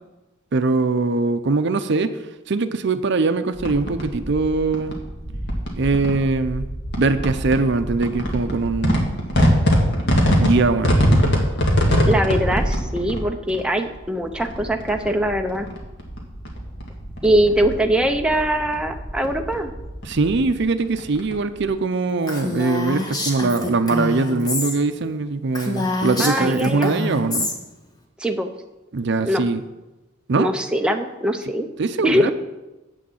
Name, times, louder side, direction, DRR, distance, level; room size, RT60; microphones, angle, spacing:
voice 1, 0.5-2.2 2.5-5.0 5.8-6.7 7.0-9.1 10.3-11.0 20.0-27.5 28.9-29.6 30.3-30.5 31.8-32.3, right 3 dB, 60° right, 10 dB, 0.6 m, -21 dB
sound 1, 3.5-21.7, equal, 55° left, 1.9 m, -24 dB
voice 2, 12.1-15.7 17.2-19.7 26.2-26.9 28.2-28.5 29.2-29.4 30.4-31.7 32.0-32.2, equal, 5° right, 4 dB, 0.6 m, -22 dB
Female speech woman speaking, 22.3-24.8 25.1-25.2 25.5-27.5, left 2 dB, 20° left, 1.3 m, -26 dB
8.4 x 6.4 x 7.1 m, 1.1 s
head